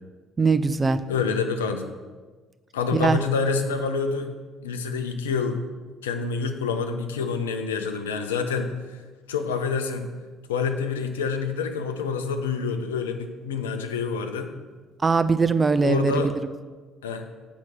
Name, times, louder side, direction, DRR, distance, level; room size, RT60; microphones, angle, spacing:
voice 1, 0.4-1.0 2.9-3.2 15.0-16.2, right 4 dB, 25° right, 12 dB, 0.4 m, -21 dB
voice 2, 1.1-1.9 2.7-4.3 4.6-5.6 6.0-8.7 9.3-10.1 10.5-14.5 15.8-16.3 17.0-17.3, left 5 dB, 80° left, 7 dB, 0.5 m, -27 dB
7.1 x 4.6 x 5.5 m, 1.4 s
figure-of-eight pair, 50°, 0 cm